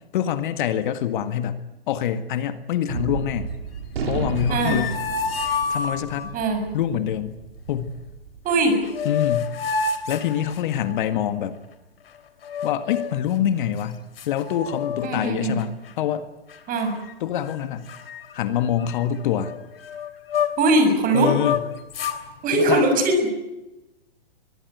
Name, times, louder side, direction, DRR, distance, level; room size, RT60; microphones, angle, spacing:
voice 1, 0.1-1.6 1.9-3.5 4.1-5.0 5.7-6.3 6.7-7.4 7.7-7.9 9.0-9.5 10.1-11.6 12.6-16.3 17.2-17.9 18.3-19.5 21.1-21.6 22.5-22.9, left 10 dB, 50° left, 10 dB, 1.8 m, -25 dB
Gunshot gunfire, 2.9-9.4, right 5 dB, 70° right, 4.6 m, -33 dB
sound 1, 4.3-6.3 8.5-8.6 8.9-11.1 12.4-13.2 13.8-13.9 14.2-15.3 15.6-15.9 16.5-17.1 17.4-17.6 17.9-20.8 21.1-22.2, left 6 dB, 70° left, 3.5 m, -29 dB
voice 2, 4.5-4.8 6.3-6.6 8.4-8.8 15.0-15.6 16.7-16.9 20.6-21.3 22.4-23.3, right 2 dB, 25° right, 7 dB, 6.7 m, -20 dB
24.0 x 21.0 x 8.2 m, 0.98 s
hypercardioid pair, 120°, 31 cm